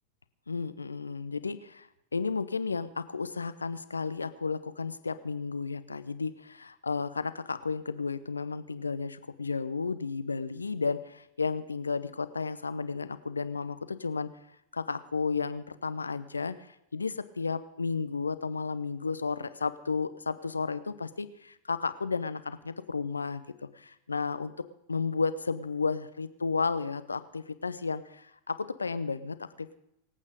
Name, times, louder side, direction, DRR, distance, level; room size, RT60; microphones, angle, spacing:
voice 1, 0.5-1.9 2.1-14.3 14.7-23.4 23.7-24.5 24.9-29.7, left 4 dB, 75° left, 13 dB, 1.0 m, -33 dB
25.0 x 8.7 x 5.2 m, 0.80 s
figure-of-eight pair, 90°, 0 cm